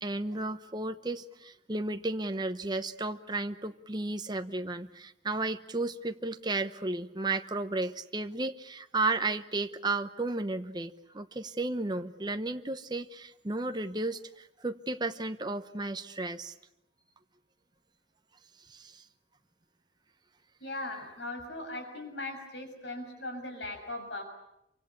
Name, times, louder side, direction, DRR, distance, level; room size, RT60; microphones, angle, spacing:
voice 1, 0.0-16.5 18.7-19.0, right 2 dB, 25° right, 8 dB, 0.9 m, -33 dB
voice 2, 20.6-24.2, left 2 dB, 80° left, 5 dB, 6.7 m, -39 dB
27.5 x 25.0 x 8.5 m, 0.84 s
head